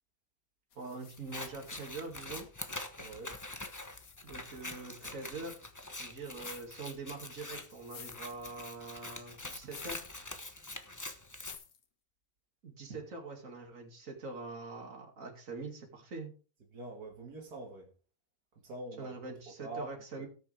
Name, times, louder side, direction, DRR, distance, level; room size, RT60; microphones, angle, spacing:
sound 1, 0.7-2.6 3.0-5.2 6.3-6.9 7.4-8.9 9.6-10.2 10.5-10.6 11.3-11.8, left 7 dB, 70° left, 1.7 m, -54 dB
voice 1, 0.8-2.5 4.2-5.6 6.0-10.1 12.6-16.3 19.0-20.3, right 3 dB, 60° right, 2.9 m, -44 dB
Scissors, 1.2-11.6, left 2 dB, 15° left, 0.9 m, -45 dB
voice 2, 3.0-3.4 16.7-17.9 18.6-20.3, right 2 dB, 80° right, 2.6 m, -45 dB
18.5 x 6.8 x 3.5 m
omnidirectional pair, 1.6 m